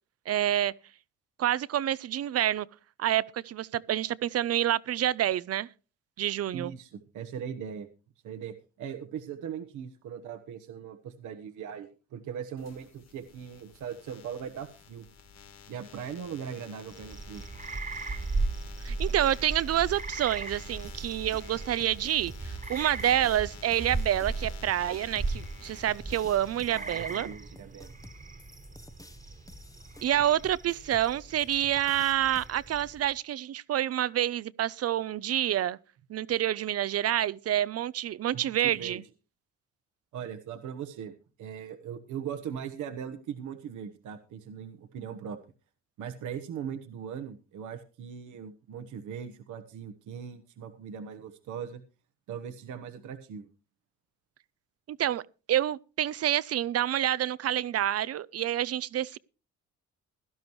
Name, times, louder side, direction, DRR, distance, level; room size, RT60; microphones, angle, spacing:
voice 1, 0.3-0.7 1.4-2.7 3.0-5.7 6.2-6.7 18.8-27.3 30.0-35.8 36.1-39.0 54.9-55.2 55.5-59.2, right 11 dB, 55° right, 0.6 m, -28 dB
voice 2, 6.5-7.9 8.2-15.0 15.7-17.4 26.7-27.9 38.3-39.0 40.1-45.4 46.0-51.8 52.3-53.5, right 8 dB, 80° right, 1.2 m, -40 dB
sound 1, 12.6-27.1, left 7 dB, 60° left, 1.6 m, -51 dB
sound 2, 16.9-33.1, right 3 dB, 25° right, 1.5 m, -37 dB
sound 3, 20.8-32.5, left 2 dB, 10° left, 0.8 m, -53 dB
17.0 x 12.0 x 3.1 m
cardioid pair, 90°, 30 cm